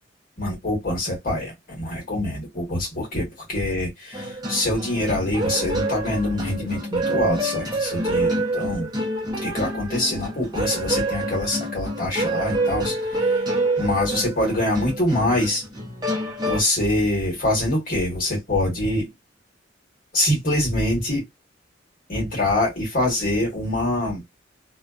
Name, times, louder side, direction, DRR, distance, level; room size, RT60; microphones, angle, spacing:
voice 1, 0.4-8.9 9.4-13.4 13.8-15.6 16.4-19.1 20.1-21.2 22.1-24.2, left 1 dB, 45° left, 1.2 m, -24 dB
sound 1, 4.1-16.6, right 2 dB, 20° right, 0.6 m, -27 dB
2.3 x 2.3 x 2.3 m
head